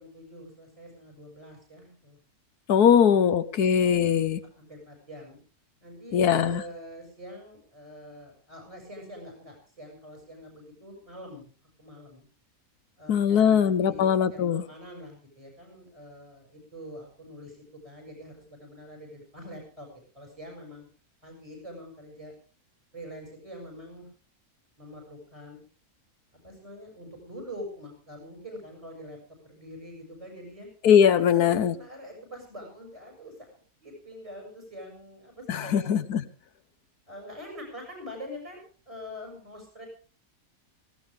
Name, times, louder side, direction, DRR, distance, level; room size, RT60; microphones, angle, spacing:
voice 1, 0.0-2.2 2.8-3.7 4.5-5.4 5.8-12.3 13.0-17.6 17.8-20.9 21.2-22.3 22.9-24.1 24.8-25.6 26.4-29.2 29.4-30.7 31.2-35.9 37.1-39.9, equal, 20° right, 1 dB, 7.5 m, -45 dB
voice 2, 2.7-4.4 6.1-6.6 13.1-14.6 30.8-31.7 35.5-36.2, left 8 dB, 80° left, 12 dB, 1.5 m, -21 dB
19.0 x 17.0 x 3.7 m, 0.39 s
omnidirectional pair, 1.6 m